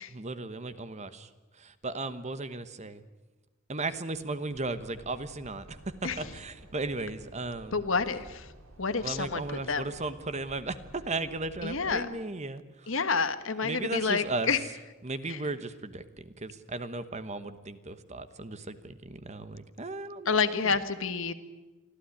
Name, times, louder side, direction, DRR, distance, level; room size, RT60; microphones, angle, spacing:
voice 1, 0.1-3.0 3.7-7.8 9.0-12.9 13.6-14.5 15.0-20.8, right 3 dB, 35° right, 12 dB, 1.2 m, -36 dB
sound 1, 4.5-12.0, right 1 dB, 75° right, 3.6 m, -52 dB
voice 2, 7.7-8.5 8.8-9.8 11.6-12.1 12.9-14.6 15.3-15.4 20.2-21.3, left 5 dB, 65° left, 11 dB, 1.5 m, -29 dB
24.5 x 14.5 x 9.8 m, 1.2 s
head